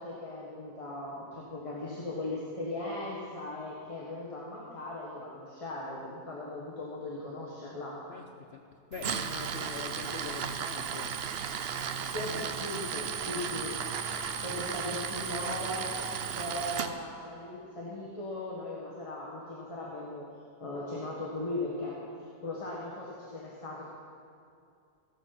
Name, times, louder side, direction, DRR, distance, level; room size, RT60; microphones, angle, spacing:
voice 1, 0.0-8.0 12.1-13.7 14.4-16.0 16.3-20.3 20.6-22.0 22.4-23.8, left 2 dB, 20° left, -5 dB, 1.4 m, -38 dB
voice 2, 8.1-8.6 8.9-11.3 13.3-13.5, left 5 dB, 65° left, 4 dB, 0.6 m, -44 dB
Tools, 8.9-16.9, right 7 dB, 75° right, 0.5 m, -35 dB
16.0 x 7.6 x 5.9 m, 2.6 s
omnidirectional pair, 1.8 m